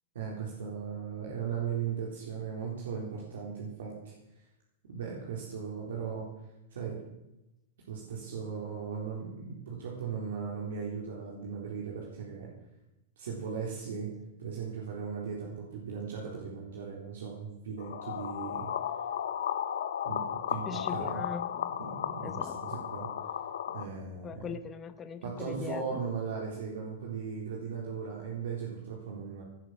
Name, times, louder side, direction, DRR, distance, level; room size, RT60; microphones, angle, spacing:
voice 1, 0.1-4.1 4.9-6.3 6.7-7.0 7.9-12.5 13.2-14.1 14.4-18.7 20.0-21.2 21.8-23.1 23.7-24.6 25.2-29.4, right 6 dB, 75° right, -3 dB, 3.9 m, -37 dB
sound 1, 17.8-23.8, left 9 dB, 75° left, 1.1 m, -34 dB
voice 2, 20.7-21.7 22.2-22.8 24.2-26.0, left 6 dB, 25° left, 10 dB, 1.2 m, -40 dB
18.0 x 10.0 x 6.4 m, 0.93 s
hypercardioid pair, 110°, 0 cm